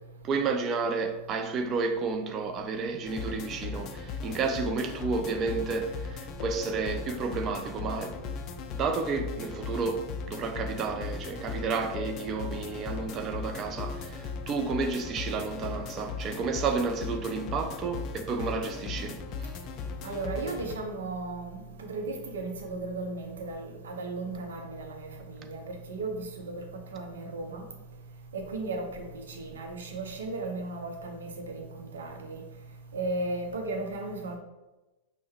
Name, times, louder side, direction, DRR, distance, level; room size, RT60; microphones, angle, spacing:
voice 1, 0.2-8.2 8.7-19.5, right 4 dB, 30° right, 0.5 m, -31 dB
sound 1, 3.1-20.8, left 5 dB, 35° left, 0.3 m, -38 dB
voice 2, 20.0-21.6 21.9-26.6 26.9-27.6 28.3-32.4 32.9-34.4, right 2 dB, 65° right, 0.7 m, -35 dB
5.3 x 2.2 x 3.1 m
figure-of-eight pair, 90°, 0 cm